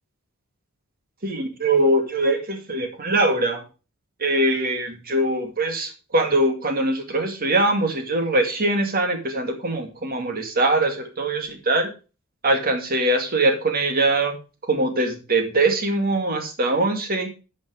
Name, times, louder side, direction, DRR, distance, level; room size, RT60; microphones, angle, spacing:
voice 1, 1.2-3.6 4.2-11.9 12.4-14.4 14.7-17.3, right 2 dB, 45° right, 5 dB, 2.2 m, -22 dB
10.5 x 5.6 x 5.1 m, 0.32 s
head